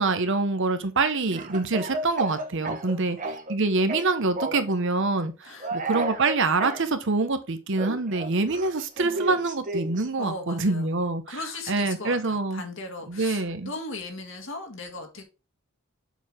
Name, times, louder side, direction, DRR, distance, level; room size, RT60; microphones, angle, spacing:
voice 1, 0.0-11.4 11.7-12.6 13.1-13.7, right 3 dB, 60° right, 0.9 m, -25 dB
Speech / Cough, 1.3-3.6 3.9-4.7 5.6-6.8 7.8-10.1, right 2 dB, 35° right, 1.2 m, -33 dB
voice 2, 2.8-3.2 5.4-5.8 10.2-11.0 11.3-15.2, left 2 dB, 60° left, 1.8 m, -38 dB
7.1 x 4.6 x 3.6 m
head